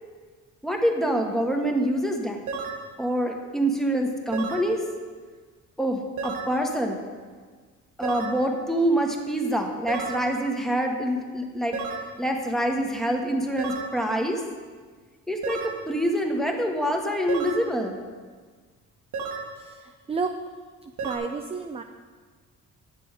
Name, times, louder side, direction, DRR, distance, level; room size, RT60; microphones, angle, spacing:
voice 1, 0.6-2.4 3.0-4.8 5.8-7.0 8.0-11.8 12.2-14.4 15.3-18.1, right 1 dB, ahead, 2 dB, 1.2 m, -26 dB
sound 1, 2.5-2.8 4.3-4.7 6.2-6.5 8.0-8.4 9.9-10.2 11.7-12.1 13.6-14.0 15.4-15.8 17.3-17.7 19.1-19.5 21.0-21.2, right 5 dB, 80° right, 1.3 m, -32 dB
voice 2, 19.6-20.3 20.8-21.8, right 4 dB, 20° right, 6 dB, 0.4 m, -32 dB
8.7 x 7.0 x 4.9 m, 1.5 s
cardioid pair, 90°, 30 cm